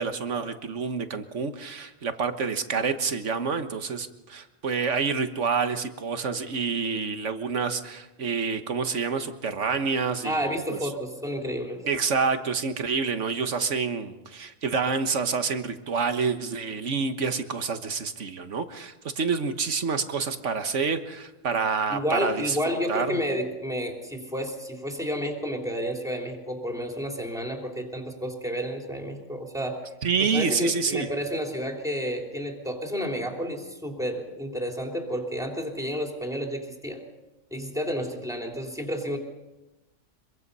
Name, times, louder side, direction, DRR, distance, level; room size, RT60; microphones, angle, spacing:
voice 1, 0.0-10.4 11.8-22.6 22.9-23.2 30.0-31.1, right 5 dB, 60° right, 9 dB, 1.6 m, -28 dB
voice 2, 10.2-11.8 21.9-29.8 30.3-37.0 37.5-39.2, equal, ahead, 1 dB, 3.5 m, -31 dB
25.0 x 23.5 x 5.5 m, 1.0 s
omnidirectional pair, 1.5 m